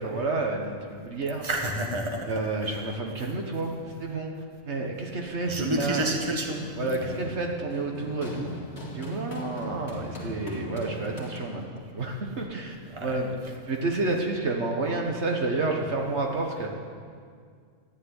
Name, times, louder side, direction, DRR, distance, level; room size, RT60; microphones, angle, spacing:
voice 1, 0.0-1.5 2.2-4.3 4.6-6.1 6.8-8.6 8.9-16.7, right 2 dB, 60° right, 1 dB, 1.5 m, -30 dB
voice 2, 1.4-2.4 5.5-6.7 7.0-7.1 12.9-13.2, right 1 dB, 20° right, 2 dB, 1.6 m, -29 dB
Run, 5.4-11.8, equal, 55° left, 2.3 m, -39 dB
14.0 x 8.5 x 9.8 m, 2.1 s
omnidirectional pair, 1.3 m